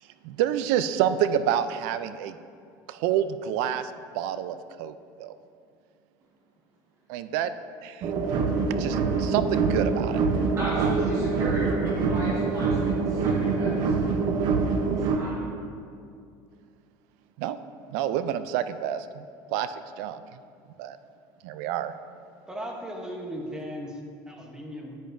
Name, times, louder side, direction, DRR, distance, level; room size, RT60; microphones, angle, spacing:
voice 1, 0.2-2.4 2.9-5.3 7.1-7.5 7.8-8.0 8.8-10.2 10.8-10.9 17.4-17.6 17.9-19.3 19.5-20.2 20.8-21.0 21.4-21.9, right 10 dB, 85° right, 12 dB, 0.4 m, -28 dB
sound 1, 8.0-15.2, right 4 dB, 55° right, 0.7 m, -25 dB
voice 2, 10.6-12.8 13.1-13.9 15.0-15.4, equal, 35° right, -6 dB, 1.6 m, -34 dB
voice 3, 22.5-24.0 24.3-25.0, equal, 10° right, 0 dB, 0.9 m, -37 dB
10.0 x 8.6 x 2.6 m, 2.3 s
cardioid pair, 155°, 9 cm